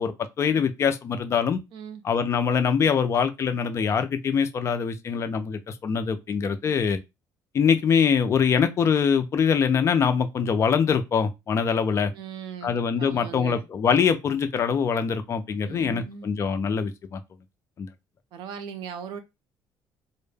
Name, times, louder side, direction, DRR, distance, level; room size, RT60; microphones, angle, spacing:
voice 1, 0.0-1.6 2.0-7.0 7.5-12.1 12.6-17.2 17.8-17.9, left 6 dB, 35° left, 0.4 m, -23 dB
voice 2, 1.7-2.0 12.1-13.6 15.6-16.3 18.3-19.2, right 7 dB, 75° right, 0.5 m, -39 dB
2.1 x 2.0 x 3.2 m
cardioid pair, 135°, 8 cm